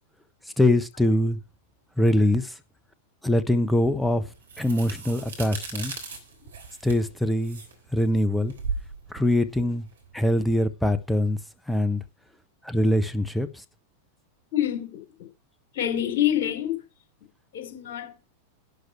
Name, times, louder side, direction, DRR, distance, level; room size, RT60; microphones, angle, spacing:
voice 1, 0.6-1.4 2.0-2.6 3.2-4.2 4.6-5.9 6.8-7.6 7.9-8.5 9.1-9.9 10.1-11.4 11.7-12.0 12.6-13.6, left 1 dB, 5° left, 1.0 m, -23 dB
sound 1, 3.8-10.6, right 4 dB, 65° right, 3.4 m, -38 dB
voice 2, 14.5-15.3 15.7-16.8 17.5-18.3, left 11 dB, 55° left, 3.9 m, -27 dB
11.5 x 8.0 x 4.6 m
figure-of-eight pair, 90°, 0 cm